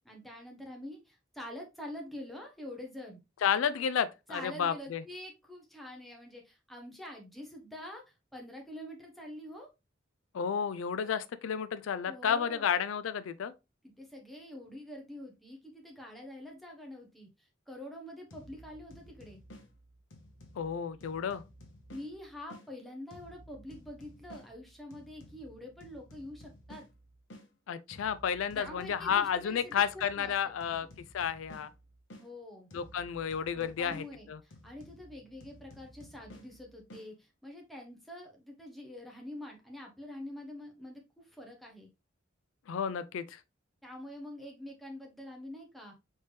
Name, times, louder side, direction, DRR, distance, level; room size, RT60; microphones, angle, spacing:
voice 1, 0.0-3.2 4.3-9.7 12.1-12.7 13.8-19.4 21.9-26.8 28.5-29.8 30.2-30.9 32.2-32.7 33.5-41.9 43.8-46.0, left 1 dB, ahead, 1.0 m, -46 dB
voice 2, 3.4-5.0 10.3-13.5 20.6-21.4 27.7-30.9 31.1-31.7 32.7-34.4 42.7-43.4, left 7 dB, 85° left, 0.4 m, -31 dB
sound 1, 18.3-22.7 23.1-27.5 27.9-32.3 32.7-37.1, equal, 70° left, 1.1 m, -54 dB
4.2 x 3.4 x 3.2 m
head